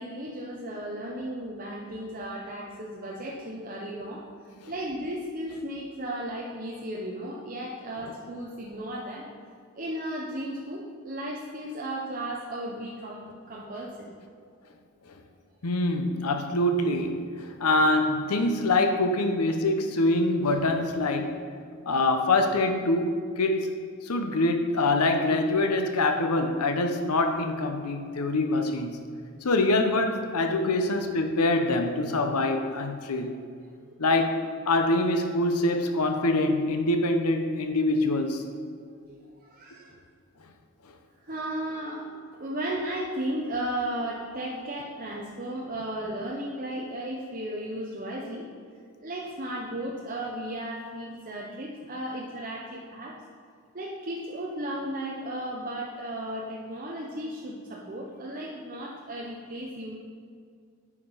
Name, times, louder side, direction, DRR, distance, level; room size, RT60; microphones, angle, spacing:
voice 1, 0.0-4.2 4.7-9.3 9.8-14.1 17.4-17.5 33.8-33.9 38.7-39.9 41.2-48.5 49.0-53.2 53.7-60.0, right 1 dB, 40° right, -3 dB, 0.8 m, -35 dB
voice 2, 15.6-21.4 21.9-23.7 24.0-29.0 29.4-33.3 34.0-34.4 34.7-38.4, left 2 dB, 90° left, 6 dB, 0.8 m, -25 dB
9.8 x 5.0 x 5.6 m, 2.2 s
head